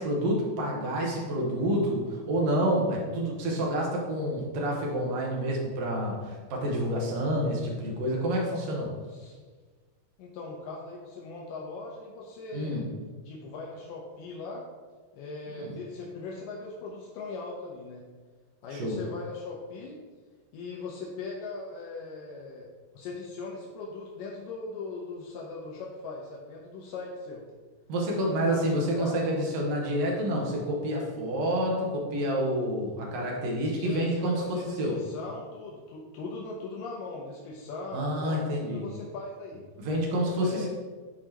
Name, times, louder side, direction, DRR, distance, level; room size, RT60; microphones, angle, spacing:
voice 1, 0.0-8.9 12.5-12.9 15.6-15.8 18.7-19.0 27.9-34.4 34.8-35.0 37.9-38.8 39.8-40.7, equal, 75° right, -2 dB, 1.5 m, -28 dB
voice 2, 10.2-12.8 13.3-14.6 15.1-18.0 18.6-20.0 20.5-22.7 22.9-27.4 28.5-29.7 33.7-39.6 40.4-40.7, left 3 dB, 80° left, -2 dB, 1.9 m, -39 dB
11.0 x 4.9 x 2.9 m, 1.4 s
omnidirectional pair, 4.9 m